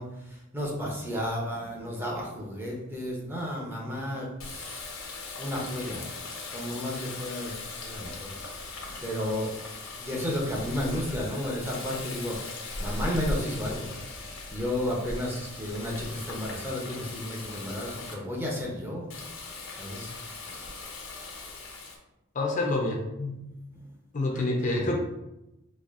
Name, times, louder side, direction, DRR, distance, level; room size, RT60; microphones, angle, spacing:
voice 1, 0.0-4.8 5.4-6.1 6.5-7.5 7.8-8.3 8.6-9.6 10.0-13.9 14.2-19.1 19.8-20.1 20.5-20.6 23.8-23.9 24.3-24.9, left 1 dB, 10° right, -3 dB, 0.7 m, -33 dB
Water tap faucet, 4.4-18.1 19.1-22.0, left 2 dB, 85° left, 0.7 m, -39 dB
voice 2, 22.3-23.4 24.1-25.0, left 2 dB, 40° left, 0 dB, 0.5 m, -28 dB
4.1 x 2.7 x 2.5 m, 0.92 s
head